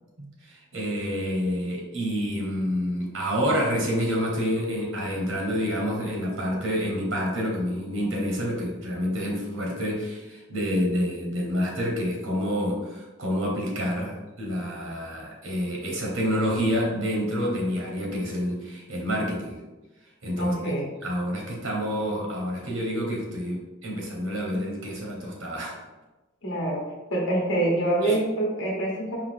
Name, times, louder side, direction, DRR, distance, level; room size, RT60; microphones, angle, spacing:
voice 1, 0.2-19.6 20.2-20.7 21.0-25.8 28.0-28.2, equal, 80° right, -2 dB, 1.2 m, -28 dB
voice 2, 20.4-20.9 26.4-26.8 27.1-29.2, right 1 dB, 65° left, -3 dB, 1.0 m, -25 dB
4.8 x 2.7 x 3.7 m, 1.1 s
head